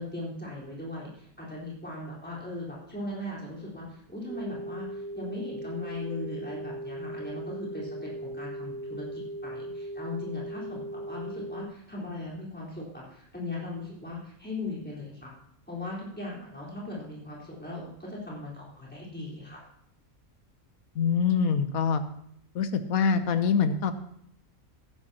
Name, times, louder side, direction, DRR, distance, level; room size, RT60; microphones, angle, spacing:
voice 1, 0.0-15.3 15.7-19.6, left 2 dB, 5° left, -6 dB, 4.1 m, -38 dB
sound 1, 4.3-11.7, right 1 dB, 40° right, 6.0 m, -38 dB
voice 2, 20.9-22.0 22.5-23.9, left 6 dB, 80° left, 10 dB, 1.3 m, -24 dB
15.0 x 11.5 x 2.9 m, 0.74 s
omnidirectional pair, 1.5 m